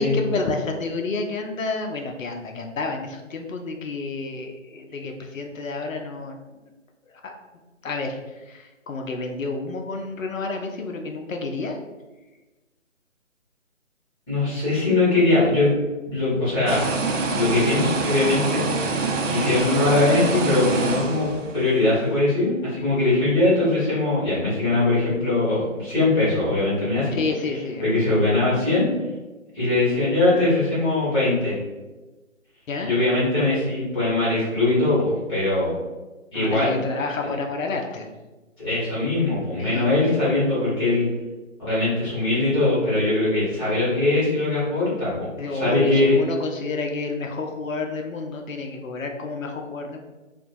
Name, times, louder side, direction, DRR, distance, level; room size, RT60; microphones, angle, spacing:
voice 1, 0.0-6.6 7.2-7.3 7.8-11.8 27.1-28.1 32.7-32.9 36.3-38.1 39.6-39.9 45.4-50.0, left 3 dB, 85° left, 3 dB, 0.6 m, -30 dB
voice 2, 14.3-16.8 17.3-18.6 19.3-27.2 27.8-28.8 29.5-31.6 32.8-35.7 36.3-36.8 38.6-41.1 41.6-46.1, left 2 dB, 20° left, -10 dB, 1.1 m, -21 dB
sound 1, 16.7-21.8, right 3 dB, 75° right, 0.5 m, -25 dB
2.7 x 2.2 x 2.5 m, 1.2 s
figure-of-eight pair, 150°, 39 cm